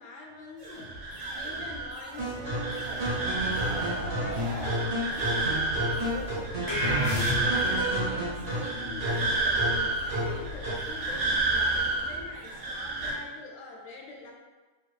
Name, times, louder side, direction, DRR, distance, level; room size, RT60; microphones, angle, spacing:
voice 1, 0.0-3.1 3.4-7.1 7.4-9.7 10.0-14.3, left 2 dB, 65° left, 0 dB, 0.8 m, -44 dB
sound 1, 0.6-13.1, right 2 dB, 85° right, 1.2 m, -31 dB
sound 2, 2.2-10.9, equal, 65° right, 1.4 m, -32 dB
sound 3, 6.7-7.8, equal, 35° left, 0.3 m, -28 dB
3.0 x 2.5 x 3.1 m, 1.3 s
omnidirectional pair, 1.6 m